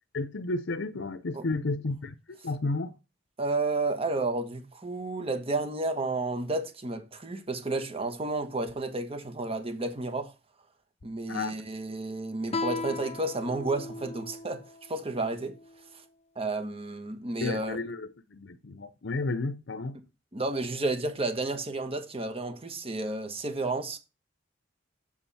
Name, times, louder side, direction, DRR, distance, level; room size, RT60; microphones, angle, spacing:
voice 1, 0.1-2.1 2.4-2.9 11.3-11.6 17.4-20.0, left 3 dB, 70° left, 0.7 m, -32 dB
voice 2, 3.4-10.3 11.0-14.6 14.9-15.6 16.3-17.8 20.3-24.0, right 2 dB, 30° right, 1.3 m, -31 dB
Guitar, 12.5-15.8, left 3 dB, 35° left, 0.7 m, -37 dB
7.4 x 7.0 x 4.2 m
head